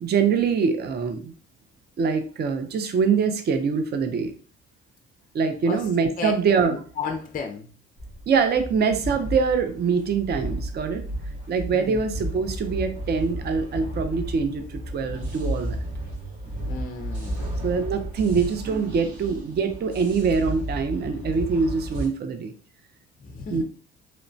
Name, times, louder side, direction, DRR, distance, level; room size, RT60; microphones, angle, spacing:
voice 1, 0.0-1.3 2.0-4.3 5.3-6.7 8.3-11.0 11.5-15.8 17.6-22.5 23.5-23.6, right 5 dB, 35° right, 8 dB, 0.4 m, -24 dB
voice 2, 6.6-7.7 11.7-12.0 16.7-17.6 23.2-23.6, left 5 dB, 30° left, 4 dB, 0.4 m, -33 dB
sound 1, 8.0-22.1, right 1 dB, 90° right, 1.2 m, -33 dB
3.0 x 2.0 x 2.6 m, 0.41 s
cardioid pair, 90°, 30 cm